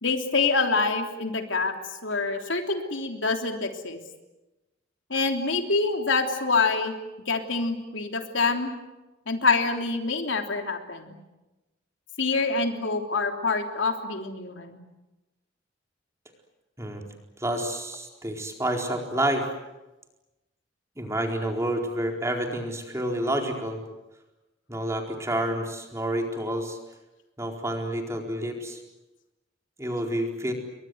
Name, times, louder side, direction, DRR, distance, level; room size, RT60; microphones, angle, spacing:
voice 1, 0.0-4.0 5.1-6.9 7.3-8.7 9.3-11.2 12.2-14.8, left 4 dB, 75° left, 4 dB, 3.3 m, -26 dB
voice 2, 17.4-19.5 21.0-23.8 24.7-26.8 27.4-28.8 29.8-30.5, right 1 dB, 15° right, 2 dB, 4.4 m, -29 dB
30.0 x 23.5 x 8.0 m, 1.0 s
head